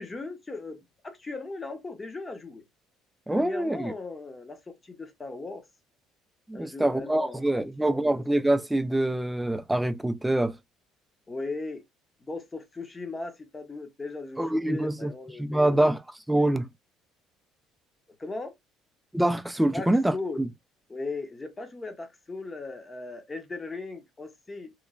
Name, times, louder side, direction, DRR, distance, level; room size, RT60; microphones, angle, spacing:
voice 1, 0.0-2.6 3.3-5.6 6.5-8.2 11.3-11.8 12.2-15.8 16.3-16.5 18.2-18.5 19.7-20.4 20.9-24.7, left 3 dB, 20° left, 0.7 m, -38 dB
voice 2, 3.3-3.9 6.5-10.6 14.4-15.1 15.4-16.0 16.3-16.7 19.1-20.5, right 1 dB, 5° right, 0.3 m, -25 dB
3.0 x 2.1 x 2.3 m
cardioid pair, 100°, 0 cm